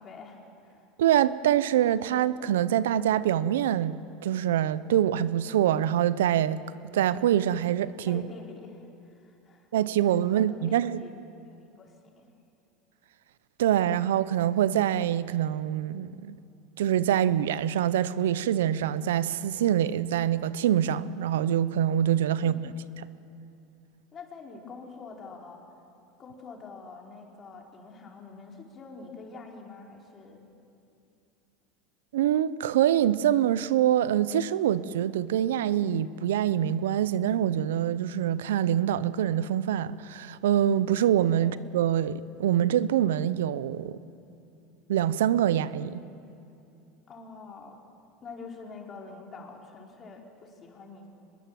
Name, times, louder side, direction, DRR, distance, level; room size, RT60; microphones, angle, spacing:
voice 1, 0.0-0.8 8.1-9.7 10.3-11.1 11.4-12.3 22.4-22.7 24.1-25.6 26.2-30.5 41.4-41.6 47.1-47.8 48.2-51.1, left 4 dB, 35° left, 4.4 m, -46 dB
voice 2, 1.0-6.6 6.9-8.2 9.7-11.0 13.6-16.4 16.8-22.5 32.1-44.0 44.9-46.0, right 11 dB, 85° right, 0.7 m, -25 dB
24.5 x 21.0 x 7.6 m
supercardioid pair, 100°, 0 cm